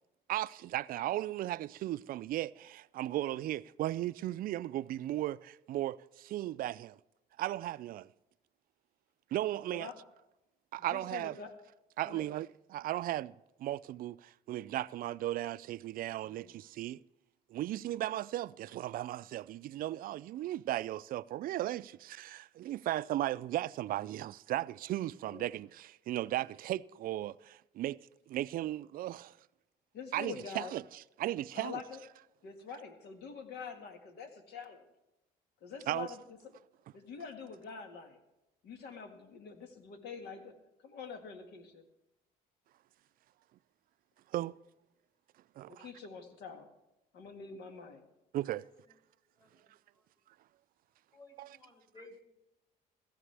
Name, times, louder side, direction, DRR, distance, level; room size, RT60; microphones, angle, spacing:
voice 1, 0.3-7.0 7.4-8.1 9.3-9.9 10.7-11.4 12.0-13.3 13.6-17.0 17.5-28.0 28.3-29.3 30.1-31.8 35.9-36.1 44.3-44.5 45.6-45.9 48.3-48.7 51.4-51.5, right 14 dB, 60° right, 0.4 m, -36 dB
voice 2, 9.7-10.0 10.9-11.5 12.0-12.3 16.2-16.5 25.3-25.5 29.9-30.7 31.5-32.0 32.4-34.8 35.6-36.4 36.9-38.2 38.6-40.5 40.8-41.8 45.7-46.7 47.1-48.0, left 6 dB, 75° left, 1.8 m, -46 dB
voice 3, 48.6-49.0 49.3-50.1 51.1-52.3, left 2 dB, 25° left, 3.4 m, -58 dB
16.0 x 14.5 x 3.4 m
cardioid pair, 110°, 17 cm